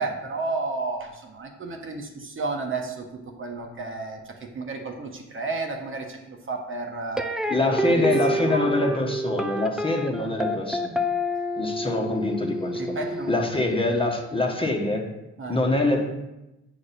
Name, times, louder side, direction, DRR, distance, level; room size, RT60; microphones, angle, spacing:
voice 1, 0.0-7.3 7.9-8.8 11.9-12.0 12.7-13.3 15.4-15.6, right 3 dB, 40° right, 2 dB, 1.3 m, -32 dB
sound 1, 7.2-14.3, equal, ahead, 0.6 m, -28 dB
voice 2, 7.5-11.0 11.6-12.8 13.3-15.0 15.5-16.0, left 2 dB, 15° left, 1 dB, 1.4 m, -24 dB
8.7 x 5.1 x 4.2 m, 0.97 s
cardioid pair, 90°, 30 cm